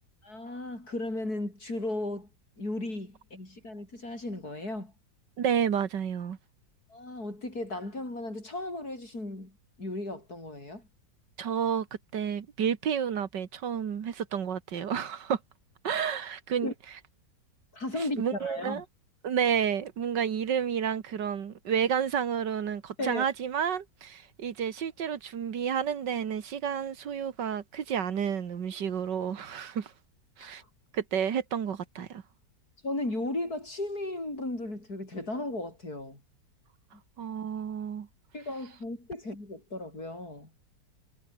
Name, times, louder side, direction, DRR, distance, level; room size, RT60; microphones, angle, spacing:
voice 1, 0.2-2.3 2.6-4.9 6.9-10.9 16.6-16.7 17.7-18.8 23.0-23.3 30.4-30.5 32.8-36.2 38.3-40.5, left 2 dB, 60° left, 8.2 m, -35 dB
voice 2, 5.4-6.4 11.4-11.9 12.1-15.4 15.8-16.7 18.0-18.8 19.2-29.9 30.4-30.6 30.9-32.2 37.2-38.1, right 8 dB, 90° right, 2.2 m, -30 dB
omnidirectional pair, 1.8 m